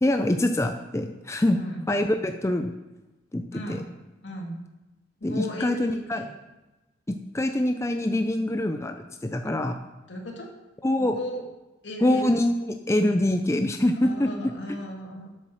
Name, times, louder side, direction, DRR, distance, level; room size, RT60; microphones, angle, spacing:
voice 1, 0.0-1.6 1.9-2.8 3.3-3.4 3.7-3.8 5.2-6.2 7.1-9.7 10.8-11.1 12.0-14.3, left 1 dB, 15° left, 5 dB, 0.5 m, -24 dB
voice 2, 1.5-1.8 3.5-3.9 4.2-4.6 5.2-6.3 10.1-10.5 11.0-11.5 11.8-12.4 13.9-15.5, equal, 80° left, 0 dB, 2.1 m, -36 dB
8.0 x 7.5 x 6.3 m, 1.1 s
head